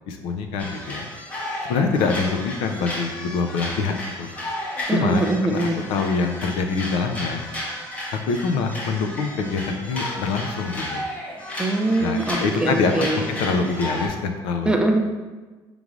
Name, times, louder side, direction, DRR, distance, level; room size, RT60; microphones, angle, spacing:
voice 1, 0.1-1.1 1.7-4.3 4.9-7.4 8.3-11.1 12.0-14.8, left 4 dB, 90° left, 5 dB, 0.5 m, -25 dB
sound 1, 0.6-14.1, left 1 dB, 15° left, 0.7 m, -33 dB
voice 2, 4.9-5.8 11.6-13.3 14.7-15.0, right 2 dB, 10° right, 2 dB, 0.3 m, -22 dB
5.1 x 3.1 x 2.4 m, 1.2 s
cardioid pair, 170°, 9 cm